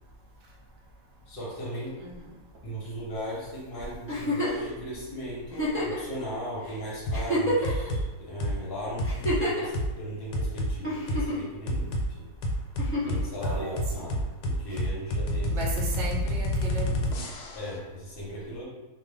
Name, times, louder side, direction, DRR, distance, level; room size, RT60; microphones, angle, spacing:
voice 1, 1.3-2.0 2.6-12.3 13.0-15.6 17.5-18.7, equal, 45° left, -5 dB, 0.8 m, -37 dB
voice 2, 2.0-2.3 13.4-14.0 15.5-17.1, right 1 dB, 65° right, -2 dB, 0.6 m, -36 dB
Giggle, 4.1-4.7 5.5-6.0 6.7-6.8 7.1-7.9 9.0-9.7 10.8-11.5 12.8-13.2 14.7-14.8, equal, 10° left, 0.6 m, -28 dB
sound 1, 7.1-7.3 7.6-8.0 8.4-8.6 9.0-9.4 9.7-9.9 10.3-10.7 11.1-11.2 11.7-12.1 12.4-17.7, equal, 85° left, 1.2 m, -28 dB
2.7 x 2.3 x 3.3 m, 1.1 s
omnidirectional pair, 1.7 m